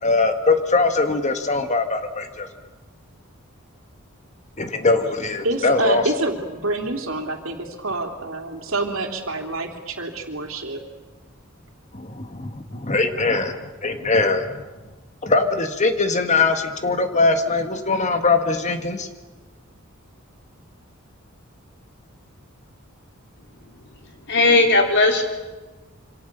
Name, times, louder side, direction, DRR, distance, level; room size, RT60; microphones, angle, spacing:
voice 1, 0.0-2.5 4.6-6.0 11.9-14.6 15.2-19.1, left 3 dB, 35° left, 7 dB, 1.7 m, -21 dB
voice 2, 5.4-10.8, right 2 dB, 70° right, 4 dB, 3.3 m, -27 dB
voice 3, 24.3-25.2, left 2 dB, 55° left, 3 dB, 3.6 m, -16 dB
27.0 x 26.0 x 6.9 m, 1.2 s
head